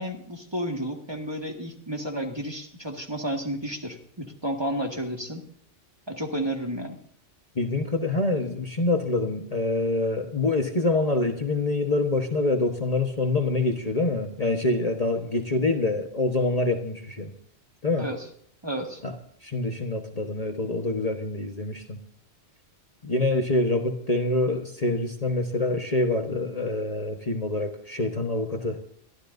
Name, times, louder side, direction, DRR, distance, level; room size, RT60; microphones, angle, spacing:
voice 1, 0.0-5.5 6.1-7.0 18.0-18.3 18.6-19.0, equal, 20° right, 2 dB, 1.9 m, -31 dB
voice 2, 7.5-17.3 17.8-18.1 19.0-19.1 19.4-22.0 23.0-28.8, left 2 dB, 35° left, 3 dB, 1.3 m, -26 dB
24.0 x 12.5 x 2.7 m, 0.63 s
omnidirectional pair, 1.2 m